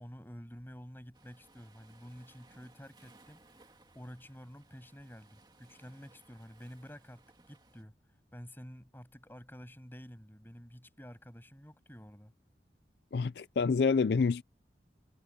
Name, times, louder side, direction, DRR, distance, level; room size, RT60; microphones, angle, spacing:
voice 1, 0.0-3.4 3.9-8.0 8.3-12.3, equal, 10° left, 7.8 m, -50 dB
Waves surf, 1.1-7.8, right 2 dB, 25° right, 2.7 m, -63 dB
voice 2, 13.1-14.4, left 5 dB, 65° left, 0.4 m, -27 dB
head